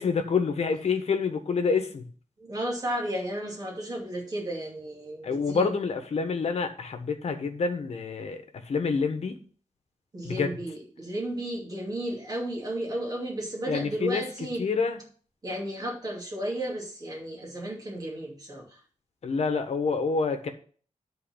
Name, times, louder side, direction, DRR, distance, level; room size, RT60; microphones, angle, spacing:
voice 1, 0.0-2.1 5.2-9.4 10.2-10.6 13.7-14.3 14.6-15.0 19.2-20.5, left 5 dB, 60° left, 7 dB, 1.3 m, -27 dB
voice 2, 2.4-5.7 10.1-14.6 15.4-18.8, right 1 dB, 30° right, -1 dB, 2.5 m, -33 dB
9.7 x 4.2 x 7.1 m, 0.43 s
wide cardioid pair, 175°, 12 cm